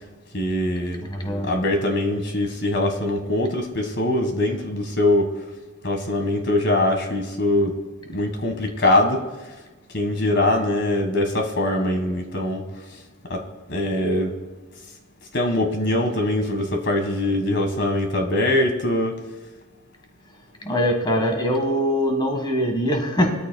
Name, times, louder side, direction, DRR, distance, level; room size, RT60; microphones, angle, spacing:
voice 1, 0.3-1.0 1.4-5.3 5.8-7.8 8.1-9.2 9.9-12.6 13.3-13.4 13.7-14.4 15.3-19.2, left 1 dB, 55° left, 5 dB, 1.7 m, -22 dB
voice 2, 1.0-1.5 20.6-23.3, equal, 20° left, 3 dB, 1.6 m, -22 dB
20.5 x 13.5 x 2.3 m, 1.2 s
head